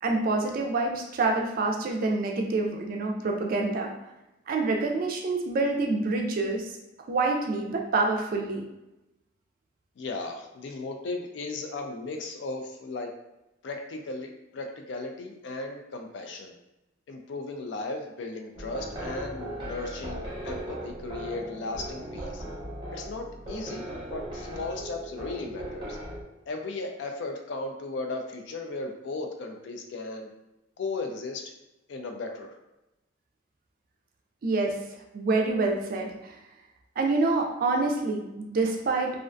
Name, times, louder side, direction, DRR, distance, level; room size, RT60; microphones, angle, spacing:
voice 1, 0.0-3.9 4.5-6.7 7.1-8.7 34.4-34.7 35.1-36.3 37.0-39.1, right 3 dB, 50° right, 1 dB, 0.3 m, -27 dB
voice 2, 10.0-13.1 13.6-16.5 17.1-22.4 22.9-26.0 26.5-30.3 30.8-31.4 31.9-32.6, left 3 dB, 65° left, 3 dB, 0.4 m, -36 dB
sound 1, 18.5-26.2, right 1 dB, 25° right, 0.7 m, -38 dB
2.4 x 2.1 x 2.5 m, 0.93 s
head